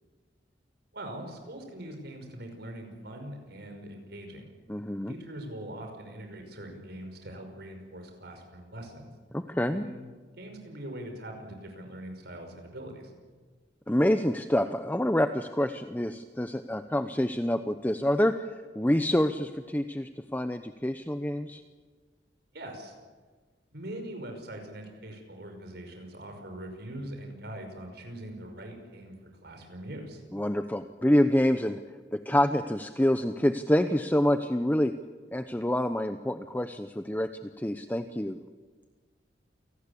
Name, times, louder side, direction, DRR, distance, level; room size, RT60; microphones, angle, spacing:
voice 1, 0.9-4.5 5.1-9.1 9.7-10.1 10.4-13.1 22.5-22.9 23.7-29.1 29.4-30.2, right 1 dB, 65° right, 5 dB, 5.7 m, -42 dB
voice 2, 4.7-5.1 9.3-9.8 13.9-18.5 18.7-21.6 30.3-31.8 32.1-34.9 35.3-37.3 37.6-38.4, left 1 dB, 10° left, 9 dB, 0.8 m, -27 dB
29.0 x 19.0 x 8.5 m, 1.4 s
head